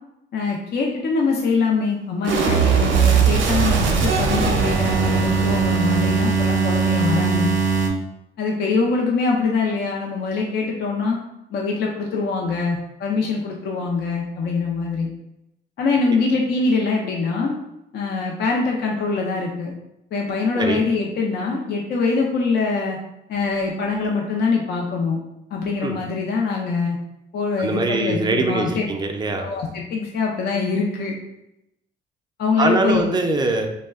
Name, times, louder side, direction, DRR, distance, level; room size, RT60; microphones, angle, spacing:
voice 1, 0.3-7.5 8.4-11.2 11.5-15.1 15.8-17.6 17.9-19.7 20.1-23.0 23.3-25.2 25.5-27.0 27.3-28.9 29.4-31.1 32.4-33.0, left 4 dB, 55° left, -1 dB, 0.5 m, -23 dB
sound 1, 2.2-7.9, right 5 dB, 75° right, 0.5 m, -19 dB
voice 2, 27.6-29.5 32.6-33.7, right 3 dB, 20° right, 4 dB, 0.4 m, -22 dB
2.2 x 2.1 x 3.4 m, 0.87 s
cardioid pair, 90°, 20 cm